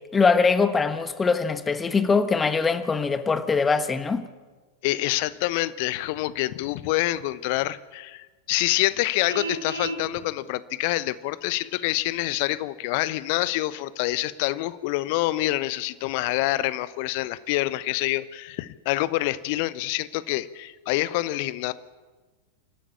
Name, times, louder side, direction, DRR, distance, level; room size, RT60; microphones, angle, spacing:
voice 1, 0.1-4.3, left 4 dB, 15° left, 1.3 m, -22 dB
voice 2, 4.8-21.7, left 17 dB, 45° left, 0.8 m, -26 dB
Vehicle horn car horn honking, 9.3-10.1, right 2 dB, 85° right, 2.0 m, -32 dB
28.5 x 12.5 x 8.5 m
figure-of-eight pair, 90°, 0 cm